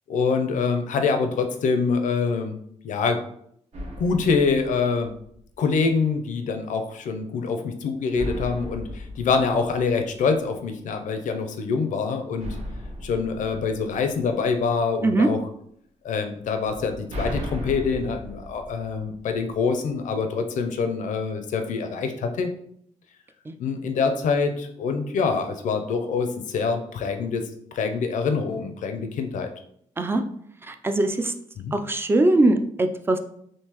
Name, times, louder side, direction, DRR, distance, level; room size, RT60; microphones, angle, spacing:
voice 1, 0.1-2.6 2.8-3.2 4.0-5.1 5.6-12.6 13.0-15.4 16.0-22.5 23.6-27.4 27.7-29.5 31.6-31.7, left 5 dB, 75° left, 6 dB, 0.5 m, -25 dB
sound 1, 3.7-5.6 8.1-10.6 12.4-14.7 16.6-19.7, equal, 60° right, 0.8 m, -36 dB
voice 2, 30.7-31.3 31.7-33.2, right 2 dB, 15° right, 7 dB, 0.3 m, -21 dB
3.7 x 2.6 x 2.9 m, 0.68 s
cardioid pair, 105°, 13 cm